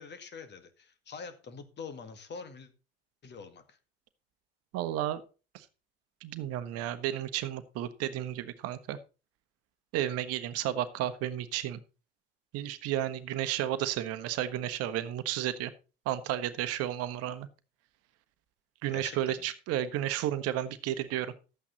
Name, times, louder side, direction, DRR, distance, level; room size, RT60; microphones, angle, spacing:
voice 1, 0.0-2.7 3.2-3.8 18.9-19.4, left 5 dB, 35° left, 9 dB, 2.1 m, -45 dB
voice 2, 4.7-5.2 5.5-5.7 6.2-9.0 9.9-11.8 12.5-15.7 16.0-17.5 18.8-21.3, right 12 dB, 55° right, 13 dB, 1.1 m, -32 dB
12.5 x 8.5 x 4.1 m, 0.33 s
hypercardioid pair, 70°, 29 cm